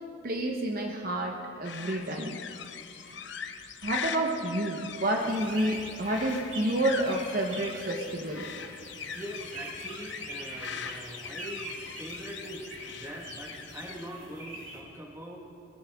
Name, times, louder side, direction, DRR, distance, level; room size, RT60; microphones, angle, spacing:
voice 1, 0.2-2.4 3.0-3.1 3.8-8.5, right 1 dB, 45° right, 1 dB, 1.0 m, -29 dB
sound 1, 1.6-14.1, left 7 dB, 60° left, 0.8 m, -41 dB
sound 2, 5.2-14.8, right 2 dB, 75° right, 2.9 m, -44 dB
voice 2, 9.1-15.4, equal, 10° right, 0 dB, 1.5 m, -42 dB
20.5 x 17.0 x 3.6 m, 2.7 s
head